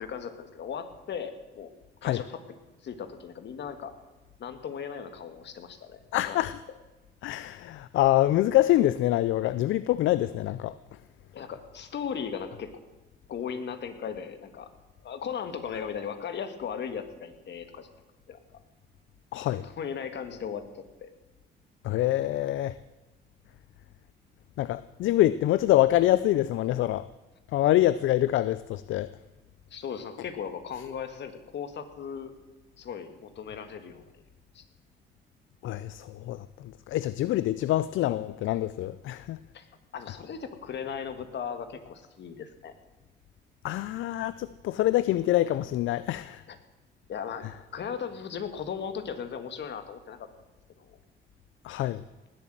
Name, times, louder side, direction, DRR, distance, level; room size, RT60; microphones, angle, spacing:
voice 1, 0.0-1.7 2.0-2.4 2.8-4.0 4.4-6.4 11.3-12.9 13.3-14.7 15.0-17.9 18.3-18.6 19.4-21.1 29.7-32.3 32.8-34.1 34.5-34.6 39.5-39.7 39.9-42.7 46.5-46.6 47.1-47.5 47.7-50.3 50.8-50.9, left 7 dB, 60° left, 9 dB, 1.8 m, -37 dB
voice 2, 6.1-6.6 7.2-10.8 19.3-19.6 21.8-22.8 24.6-27.1 27.5-29.1 35.6-39.4 43.6-46.4 51.6-52.0, left 14 dB, 75° left, 16 dB, 0.5 m, -25 dB
19.0 x 8.0 x 7.6 m, 1.1 s
cardioid pair, 90°, 20 cm